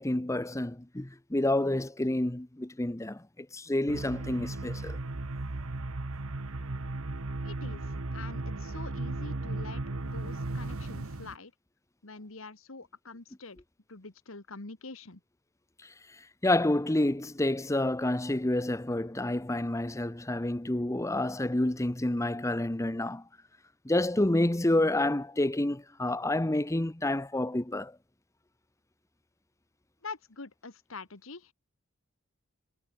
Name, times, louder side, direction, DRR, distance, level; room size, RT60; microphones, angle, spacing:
voice 1, 0.0-5.0 15.8-23.2 23.8-28.0, left 1 dB, 15° left, 0.8 m, -29 dB
sound 1, 3.9-11.3, right 2 dB, 75° right, 1.2 m, -36 dB
voice 2, 7.4-11.5 12.0-13.6 13.9-15.2 30.0-31.5, left 3 dB, 65° left, 1.8 m, -45 dB
head